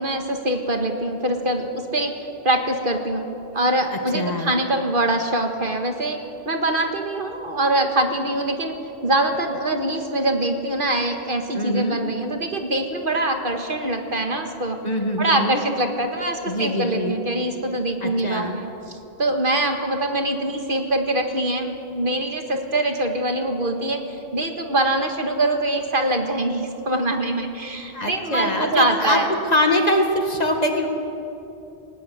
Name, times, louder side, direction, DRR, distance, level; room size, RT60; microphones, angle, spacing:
voice 1, 0.0-2.1 2.4-3.3 3.5-8.7 9.0-14.8 15.2-24.0 24.3-29.3, right 1 dB, 55° right, 5 dB, 1.9 m, -23 dB
voice 2, 3.9-4.5 11.5-12.0 14.8-15.6 16.5-17.2 18.0-18.5 27.9-30.9, left 1 dB, 40° left, 3 dB, 2.2 m, -23 dB
20.5 x 17.5 x 9.5 m, 2.8 s
omnidirectional pair, 1.0 m